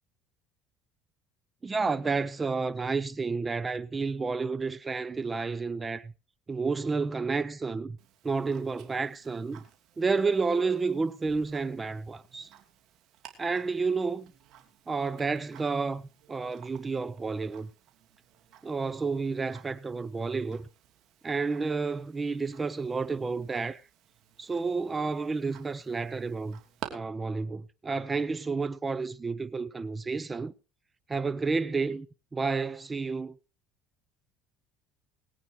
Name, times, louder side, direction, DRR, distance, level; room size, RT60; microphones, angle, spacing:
voice 1, 1.6-6.1 6.5-8.0 8.2-9.6 10.0-12.5 13.4-14.3 14.9-16.0 16.3-17.7 18.6-20.7 21.2-23.8 24.4-26.6 26.9-30.5 31.1-32.1 32.3-33.4, right 4 dB, 20° right, 0.6 m, -30 dB
Tick-tock, 8.0-26.9, right 11 dB, 60° right, 2.9 m, -53 dB
21.5 x 9.0 x 3.1 m
supercardioid pair, 100°, 0 cm